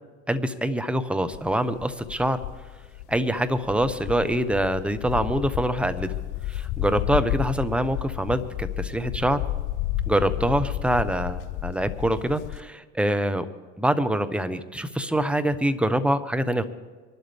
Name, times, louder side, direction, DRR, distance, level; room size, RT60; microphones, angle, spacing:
voice 1, 0.3-2.4 3.1-6.2 6.5-9.4 10.1-13.4 13.8-16.7, right 1 dB, 5° right, 10 dB, 1.1 m, -25 dB
sound 1, 1.3-12.6, left 14 dB, 55° left, 0.7 m, -31 dB
25.0 x 12.0 x 3.5 m, 1.5 s
hypercardioid pair, 80°, 37 cm